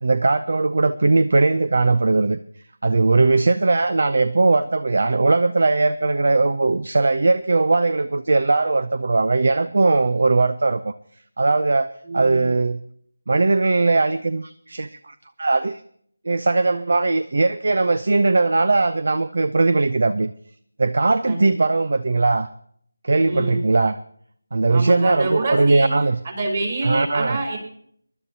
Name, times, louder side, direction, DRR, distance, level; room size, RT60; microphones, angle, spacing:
voice 1, 0.0-2.4 2.8-10.9 11.4-11.9 12.1-12.8 13.3-15.8 16.2-20.3 20.8-22.5 23.0-24.0 24.5-26.2 26.8-27.4, right 3 dB, 55° right, 13 dB, 0.6 m, -19 dB
voice 2, 12.0-12.4 21.3-21.5 23.2-23.6 24.7-25.9 26.2-27.6, right 2 dB, 35° right, 2 dB, 4.6 m, -27 dB
23.5 x 12.0 x 2.8 m, 0.62 s
figure-of-eight pair, 160°, 0 cm